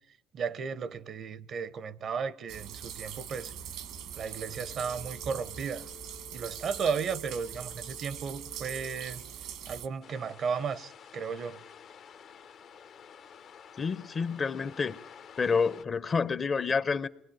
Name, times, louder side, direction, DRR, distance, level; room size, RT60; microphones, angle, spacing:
voice 1, 0.3-3.5 4.2-5.9 6.3-9.2 9.7-11.6, right 6 dB, 60° right, 1.0 m, -34 dB
sound 1, 2.5-9.9, right 9 dB, 75° right, 1.8 m, -42 dB
sound 2, 4.2-9.2, left 8 dB, 85° left, 1.9 m, -54 dB
sound 3, 10.0-15.8, left 7 dB, 60° left, 1.2 m, -51 dB
voice 2, 13.8-15.0 15.4-17.1, left 5 dB, 40° left, 0.9 m, -28 dB
28.0 x 21.0 x 9.1 m
supercardioid pair, 65°, 0 cm